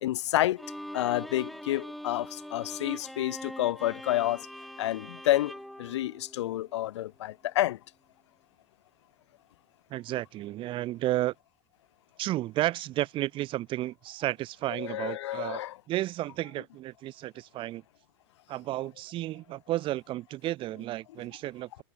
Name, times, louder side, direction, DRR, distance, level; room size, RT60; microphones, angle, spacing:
voice 1, 0.0-0.6 0.9-4.5 4.8-5.5 5.8-7.8 14.8-15.8, left 14 dB, 80° left, 0.6 m, -29 dB
Bowed string instrument, 0.6-6.8, equal, ahead, 1.3 m, -43 dB
voice 2, 9.9-11.3 12.2-15.6 15.9-17.8 18.5-21.8, right 15 dB, 35° right, 1.7 m, -32 dB
supercardioid pair, 135°, 14 cm